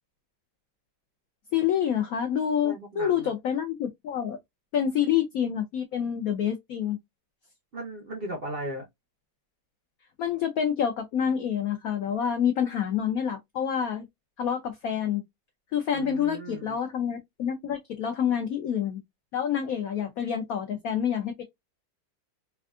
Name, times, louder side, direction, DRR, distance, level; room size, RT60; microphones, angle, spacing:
voice 1, 1.5-4.4 4.7-7.0 10.2-14.1 14.4-15.2 15.7-19.0 19.3-21.4, left 8 dB, 70° left, 0.8 m, -27 dB
voice 2, 2.6-3.3 7.7-8.8 15.9-16.8, right 1 dB, 55° right, 0.6 m, -37 dB
3.4 x 2.4 x 2.3 m
omnidirectional pair, 2.0 m